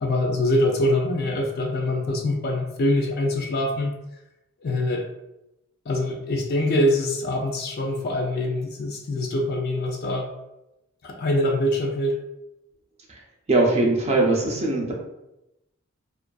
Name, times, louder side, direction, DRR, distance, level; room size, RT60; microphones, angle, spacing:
voice 1, 0.0-3.9 4.6-5.0 5.9-10.3 11.0-12.2, left 1 dB, 45° left, 2 dB, 0.4 m, -24 dB
voice 2, 13.5-14.9, right 2 dB, 30° right, -1 dB, 0.4 m, -20 dB
2.4 x 2.4 x 2.2 m, 0.90 s
head